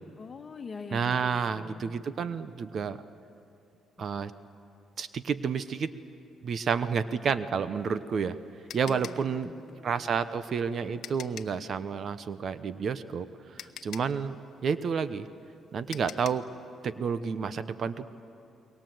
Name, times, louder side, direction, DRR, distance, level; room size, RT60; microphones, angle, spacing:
voice 1, 0.2-1.9 4.0-4.1 8.8-10.1, left 4 dB, 35° left, 6 dB, 1.6 m, -44 dB
voice 2, 0.9-3.0 4.0-4.3 5.0-5.9 6.4-8.4 8.7-9.5 9.8-13.3 13.5-14.4 14.6-15.3 15.7-16.4 16.8-18.1, right 6 dB, 55° right, 13 dB, 1.0 m, -30 dB
sound 1, 7.8-11.7 13.1-13.2 13.6-16.5, left 10 dB, 70° left, 0.9 m, -45 dB
29.0 x 22.5 x 7.9 m, 2.5 s
cardioid pair, 90°, 0 cm